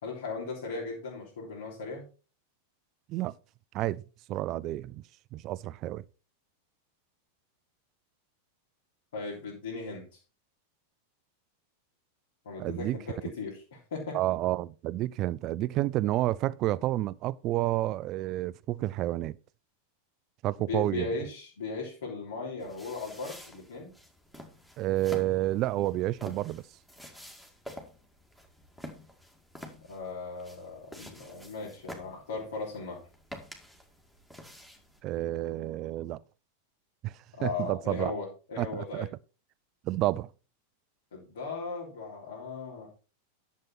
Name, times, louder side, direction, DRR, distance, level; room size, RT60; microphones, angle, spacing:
voice 1, 0.0-2.0 9.1-10.2 12.5-14.2 20.6-23.9 29.9-33.0 37.4-39.1 41.1-42.9, left 3 dB, 60° left, 3.4 m, -37 dB
voice 2, 4.3-5.0 5.3-6.0 12.6-13.0 14.1-19.4 20.4-21.1 24.8-26.6 35.0-36.2 37.0-37.1 37.4-38.1 38.6-39.1 39.8-40.3, right 15 dB, 35° right, 0.4 m, -30 dB
sound 1, 22.6-35.0, equal, 5° left, 2.0 m, -49 dB
11.0 x 7.3 x 4.2 m
figure-of-eight pair, 90°, 0 cm